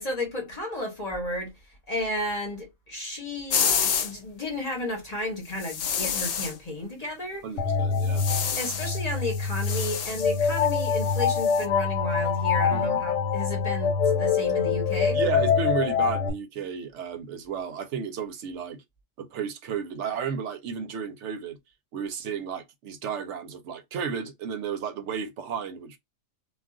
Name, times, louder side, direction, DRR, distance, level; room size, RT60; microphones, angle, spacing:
voice 1, 0.0-1.5 1.9-7.5 8.6-15.2, left 1 dB, 35° left, 0.9 m, -33 dB
sound 1, 3.5-4.1 5.6-6.5 8.0-9.0 9.3-11.6, left 7 dB, 90° left, 0.4 m, -29 dB
voice 2, 7.4-8.2 12.7-13.0 15.1-18.8 19.2-21.6 21.9-26.0, right 6 dB, 70° right, 0.8 m, -33 dB
sound 2, 7.6-16.3, left 6 dB, 70° left, 0.9 m, -25 dB
2.4 x 2.3 x 3.5 m
omnidirectional pair, 1.4 m